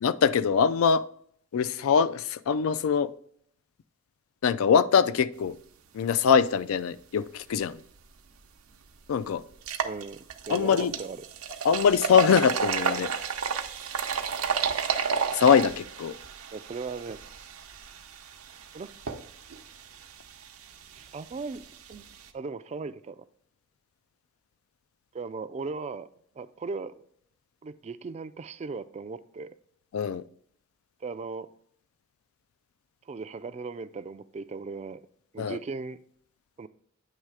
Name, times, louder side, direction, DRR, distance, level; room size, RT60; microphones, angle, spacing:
voice 1, 0.0-1.0 1.5-3.1 4.4-5.5 5.9-7.8 9.1-9.4 10.5-10.9 11.6-13.1 15.3-16.1 29.9-30.2 35.4-35.6, left 7 dB, 80° left, 0.4 m, -23 dB
sound 1, 8.3-8.4 8.8-8.9 9.5-22.3, right 6 dB, 90° right, 0.7 m, -32 dB
voice 2, 9.8-11.3 16.5-17.2 18.7-19.0 20.9-21.6 21.9-22.0 22.3-23.2 25.1-26.1 26.4-27.1 27.6-29.5 31.0-31.5 33.1-35.0 35.3-36.0 36.6-36.7, right 4 dB, 30° right, 0.3 m, -37 dB
8.9 x 3.2 x 4.8 m
head